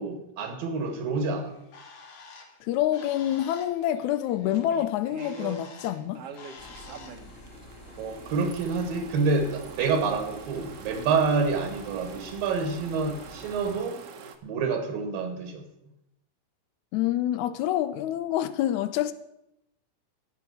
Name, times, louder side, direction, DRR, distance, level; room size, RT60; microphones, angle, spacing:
voice 1, 0.0-1.6 8.0-14.0 14.4-15.7, right 4 dB, 80° right, 3.3 m, -28 dB
Bird, 1.4-7.3, left 4 dB, 60° left, 3.0 m, -49 dB
voice 2, 2.6-6.2 16.9-19.1, left 12 dB, 85° left, 1.7 m, -27 dB
sound 1, 4.4-5.6 6.1-14.4, right 5 dB, 60° right, 1.7 m, -44 dB
sound 2, 6.6-13.8, left 1 dB, 40° left, 2.7 m, -48 dB
14.5 x 6.0 x 9.5 m
omnidirectional pair, 4.1 m